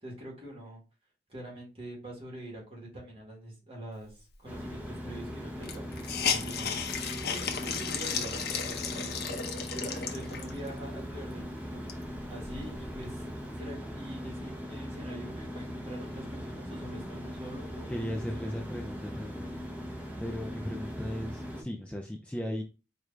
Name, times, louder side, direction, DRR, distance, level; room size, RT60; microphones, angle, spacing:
voice 1, 0.0-0.8 1.3-6.8 7.3-9.3 9.7-11.8 12.3-13.3 13.6-18.6, right 1 dB, 35° right, -2 dB, 1.7 m, -45 dB
sound 1, 4.5-21.6, equal, 10° right, 0.9 m, -40 dB
Hiss, 4.8-4.9 5.1-5.2 5.6-10.7 11.2-11.3 11.7-13.1, left 6 dB, 60° left, 0.7 m, -34 dB
voice 2, 17.9-19.6 20.2-22.6, equal, 5° left, 1 dB, 0.4 m, -36 dB
4.7 x 2.5 x 3.3 m, 0.32 s
head